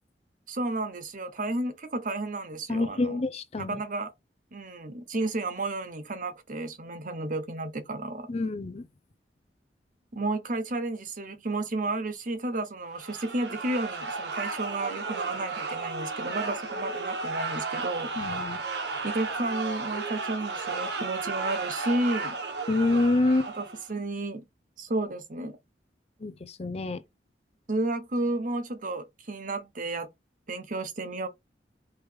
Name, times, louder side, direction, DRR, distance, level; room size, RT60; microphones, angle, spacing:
voice 1, 0.5-3.2 3.6-4.1 4.5-8.3 10.1-18.1 19.0-22.4 23.5-24.5 24.8-25.6 27.7-30.1 30.5-31.3, right 2 dB, 50° right, 1.0 m, -32 dB
voice 2, 2.7-3.8 8.3-8.8 18.2-18.6 22.7-23.5 26.2-27.0, left 2 dB, 35° left, 0.5 m, -27 dB
sound 1, 12.9-23.9, right 4 dB, 75° right, 1.4 m, -34 dB
4.7 x 3.2 x 3.4 m
head